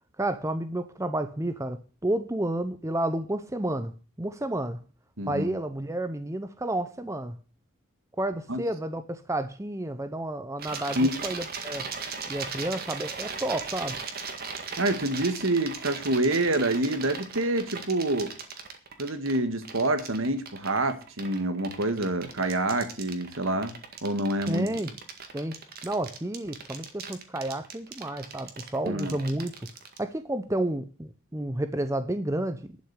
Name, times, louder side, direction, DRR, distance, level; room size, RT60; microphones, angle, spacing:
voice 1, 0.2-3.9 4.2-4.8 5.3-7.4 8.2-11.9 12.3-14.0 24.5-24.9 25.3-25.6 25.8-29.5 30.0-32.6, right 1 dB, 15° right, 10 dB, 0.7 m, -31 dB
voice 2, 5.2-5.5 8.5-8.6 10.9-11.3 14.8-18.3 19.0-23.7 24.0-24.7 28.8-29.2, right 1 dB, 65° right, 9 dB, 1.7 m, -27 dB
sound 1, 10.6-30.0, right 5 dB, 45° right, 1.9 m, -38 dB
11.5 x 6.3 x 8.1 m, 0.36 s
head